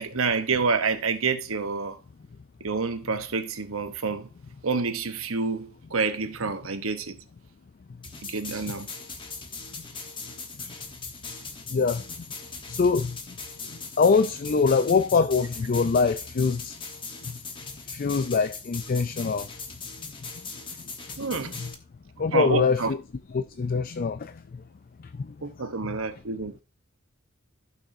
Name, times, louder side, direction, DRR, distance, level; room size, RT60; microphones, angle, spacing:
voice 1, 0.0-2.0 2.6-4.3 4.6-7.2 8.2-8.9 21.2-21.6 22.3-22.9 25.4-26.6, right 4 dB, 80° right, 1.0 m, -28 dB
sound 1, 8.0-21.7, left 4 dB, 25° left, 1.2 m, -40 dB
voice 2, 11.7-12.3 12.7-13.2 13.7-16.8 17.3-17.4 17.9-19.5 20.0-20.1 21.6-21.7 22.2-23.0 23.3-24.6 25.0-25.4, left 5 dB, 45° left, 0.4 m, -24 dB
14.5 x 6.1 x 2.7 m
head